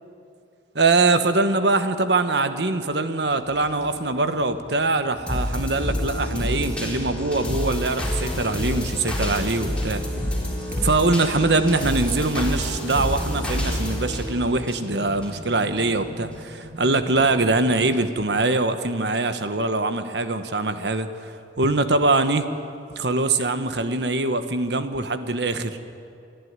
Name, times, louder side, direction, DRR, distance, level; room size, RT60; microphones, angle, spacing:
voice 1, 0.7-10.0 10.8-21.3 21.6-22.5 23.0-25.8, right 3 dB, 65° right, 9 dB, 1.2 m, -23 dB
sound 1, 3.1-18.0, right 1 dB, 85° right, 3.6 m, -42 dB
sound 2, 5.3-15.3 15.8-15.9, left 1 dB, 5° left, 3.9 m, -28 dB
28.0 x 11.5 x 9.5 m, 2.5 s
head